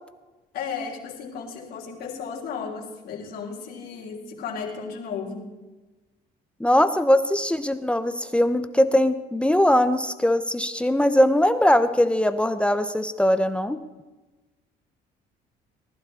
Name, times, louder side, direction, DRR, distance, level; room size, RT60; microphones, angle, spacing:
voice 1, 0.5-5.5, left 6 dB, 75° left, -2 dB, 3.7 m, -34 dB
voice 2, 6.6-13.8, left 1 dB, 5° left, 10 dB, 0.8 m, -21 dB
19.5 x 11.5 x 4.2 m, 1.2 s
cardioid pair, 110°, 17 cm